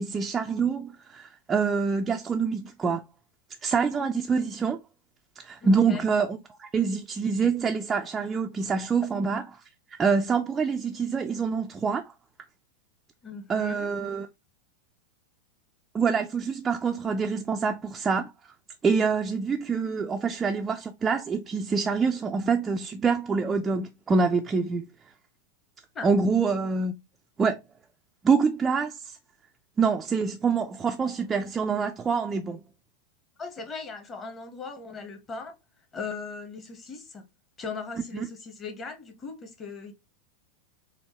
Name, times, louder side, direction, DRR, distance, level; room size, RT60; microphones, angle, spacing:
voice 1, 0.0-3.0 3.6-4.8 5.4-9.4 10.0-12.0 13.5-14.3 15.9-18.3 18.8-24.8 26.0-27.0 27.4-27.6 28.2-29.2 29.8-32.6 38.1-38.3, right 5 dB, 20° right, 0.4 m, -26 dB
voice 2, 5.6-6.0 13.2-13.9 25.9-26.1 33.4-35.5 35.9-37.2 37.6-39.9, left 4 dB, 25° left, 1.1 m, -38 dB
4.4 x 2.7 x 2.9 m
figure-of-eight pair, 90°, 0 cm